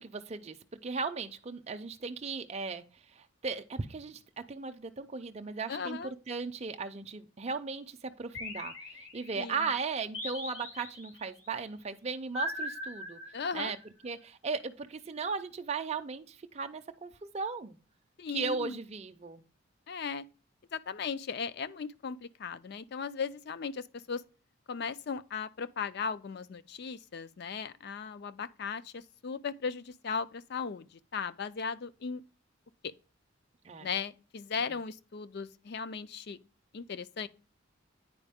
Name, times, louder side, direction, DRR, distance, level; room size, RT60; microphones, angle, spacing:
voice 1, 0.0-13.2 13.5-13.8 14.0-17.8 18.3-19.4 33.6-33.9 34.6-34.8, right 4 dB, 30° right, 0.5 m, -37 dB
voice 2, 5.7-6.1 9.4-9.7 13.3-13.7 18.2-18.8 19.9-20.2 20.7-24.2 24.7-32.2 32.8-32.9 33.8-36.4 36.7-37.3, left 5 dB, 50° left, 0.4 m, -37 dB
sound 1, 8.3-9.5 10.1-11.3 12.3-13.8, left 1 dB, 75° left, 3.3 m, -40 dB
9.2 x 4.8 x 3.5 m
head